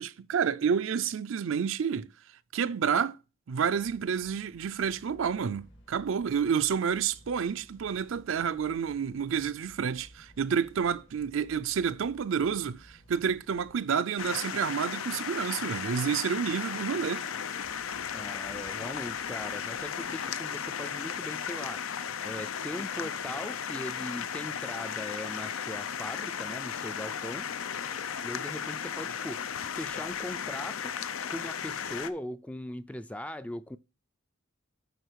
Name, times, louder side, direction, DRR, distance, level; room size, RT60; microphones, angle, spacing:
voice 1, 0.0-2.1 2.5-3.2 3.5-17.3, right 7 dB, 70° right, 0.4 m, -29 dB
sound 1, 3.6-13.8, equal, 65° left, 1.8 m, -57 dB
sound 2, 14.2-32.1, left 7 dB, 90° left, 0.6 m, -35 dB
voice 2, 18.1-21.8 22.2-27.5 28.2-29.4 29.7-31.0 31.3-33.8, left 1 dB, 5° left, 0.3 m, -40 dB
8.0 x 4.8 x 4.6 m
head